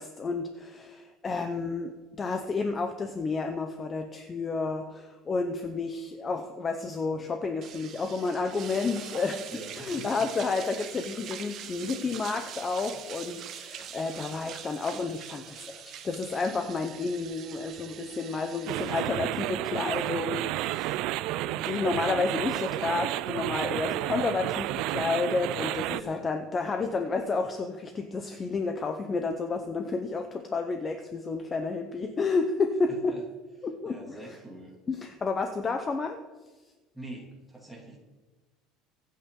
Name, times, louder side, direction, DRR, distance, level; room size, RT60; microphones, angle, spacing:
voice 1, 0.0-9.5 9.8-21.0 21.4-33.1 33.6-34.4 34.9-36.2, left 4 dB, 20° left, 6 dB, 0.7 m, -31 dB
sound 1, 7.6-21.1, right 9 dB, 35° right, 1.0 m, -43 dB
voice 2, 9.5-10.1 25.9-26.3 32.9-33.2 33.8-34.8 36.9-38.0, right 2 dB, ahead, -2 dB, 2.5 m, -44 dB
sound 2, 18.7-26.0, right 15 dB, 55° right, 0.4 m, -31 dB
24.0 x 8.6 x 3.8 m, 1.2 s
cardioid pair, 170°, 0 cm